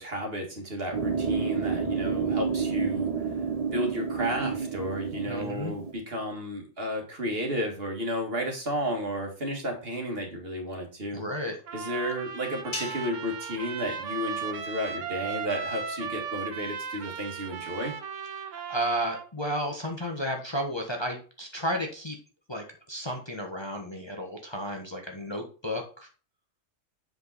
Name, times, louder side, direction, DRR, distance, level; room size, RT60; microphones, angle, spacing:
voice 1, 0.0-3.1 3.7-11.2 11.7-17.9, equal, 50° right, 2 dB, 2.3 m, -32 dB
sound 1, 0.9-5.9, right 5 dB, 30° right, 0.9 m, -29 dB
voice 2, 5.3-5.7 11.1-11.6 18.4-22.2 22.5-26.1, equal, 20° left, 2 dB, 1.2 m, -33 dB
Trumpet, 11.7-19.3, right 6 dB, 75° right, 1.3 m, -36 dB
sound 2, 12.7-15.2, left 2 dB, 65° left, 2.0 m, -42 dB
7.7 x 5.2 x 4.1 m, 0.36 s
omnidirectional pair, 1.3 m